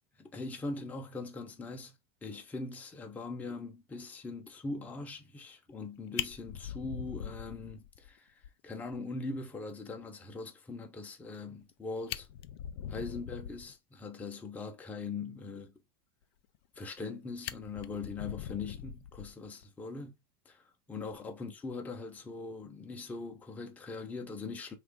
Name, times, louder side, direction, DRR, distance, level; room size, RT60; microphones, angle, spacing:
voice 1, 0.2-1.9 2.2-12.3 12.9-15.7 16.8-20.2 20.5-24.8, left 3 dB, 10° left, 0.6 m, -41 dB
Fire, 5.7-5.8 6.1-8.1 8.4-8.5 8.9-9.0 9.4-9.5 11.6-11.7 12.0-13.7 16.5-17.1 17.4-19.6 20.9-21.1, left 11 dB, 80° left, 0.4 m, -41 dB
3.3 x 2.5 x 3.5 m
supercardioid pair, 135°, 13 cm